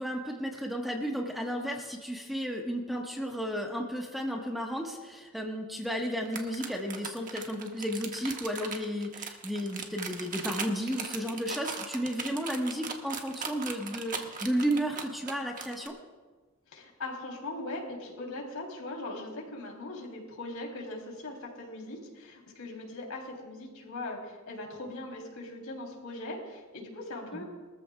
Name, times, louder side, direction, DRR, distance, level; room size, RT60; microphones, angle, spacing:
voice 1, 0.0-15.9 27.3-27.4, equal, ahead, 0 dB, 1.4 m, -33 dB
sound 1, 6.3-15.9, right 5 dB, 40° right, 1.3 m, -38 dB
voice 2, 16.7-27.4, left 2 dB, 85° left, -1 dB, 3.5 m, -40 dB
23.0 x 14.0 x 2.4 m, 1.3 s
head